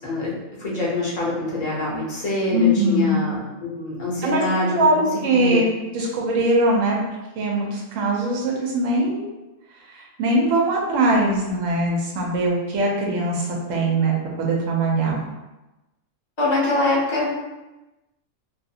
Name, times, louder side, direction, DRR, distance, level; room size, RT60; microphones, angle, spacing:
voice 1, 0.0-5.6 16.4-17.3, left 2 dB, 40° left, -5 dB, 0.7 m, -24 dB
voice 2, 2.5-3.2 4.2-7.0 7.4-9.3 9.9-14.1 14.4-15.2, right 1 dB, 70° right, -2 dB, 1.0 m, -21 dB
2.6 x 2.4 x 2.7 m, 1.0 s
omnidirectional pair, 1.4 m